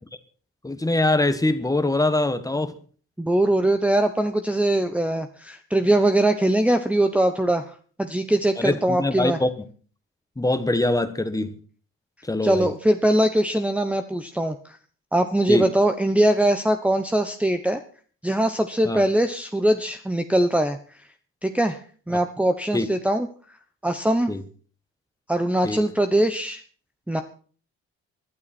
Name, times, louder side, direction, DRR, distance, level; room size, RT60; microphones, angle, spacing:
voice 1, 0.6-2.7 8.6-9.5 10.4-11.5 12.3-12.7 15.5-15.6 18.8-19.0 22.7-22.9 24.3-24.4 25.6-25.8, left 2 dB, 10° left, 1.4 m, -23 dB
voice 2, 3.2-9.4 12.4-14.8 15.1-17.8 18.2-21.0 21.4-21.8 22.1-23.3 23.8-24.3 25.3-26.6 27.1-27.2, right 1 dB, 5° right, 1.0 m, -22 dB
20.5 x 12.0 x 4.4 m
cardioid pair, 100°, 30 cm